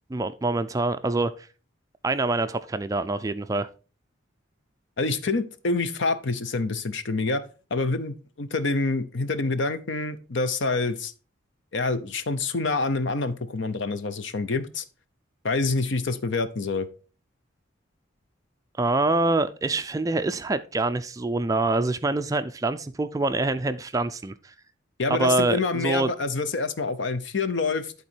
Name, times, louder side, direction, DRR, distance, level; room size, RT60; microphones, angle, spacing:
voice 1, 0.1-1.5 2.0-3.7 18.8-24.5 25.1-26.1, right 2 dB, 15° right, 0.3 m, -25 dB
voice 2, 5.0-7.4 7.7-11.1 11.7-14.8 15.4-16.9 25.0-27.9, left 3 dB, 65° left, 0.7 m, -27 dB
11.5 x 4.0 x 4.5 m
head